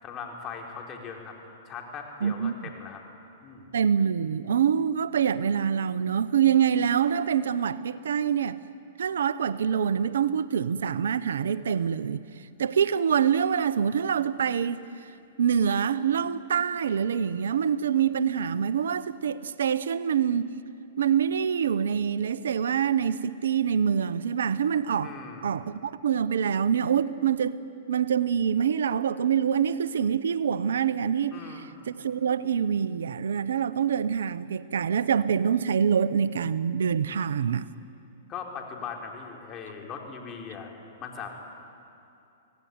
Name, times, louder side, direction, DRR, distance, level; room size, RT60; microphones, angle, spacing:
voice 1, 0.0-1.4 1.6-3.0 3.4-3.7 25.0-25.7 31.3-31.9 38.3-40.7 41.0-41.3, left 6 dB, 30° left, 1 dB, 4.2 m, -39 dB
voice 2, 2.2-2.6 3.7-8.6 9.0-12.2 12.6-14.8 15.4-20.5 21.0-25.1 25.4-27.6 27.9-31.4 31.9-37.7, right 8 dB, 80° right, 16 dB, 0.8 m, -25 dB
25.5 x 17.5 x 9.6 m, 2.7 s
hypercardioid pair, 125°, 0 cm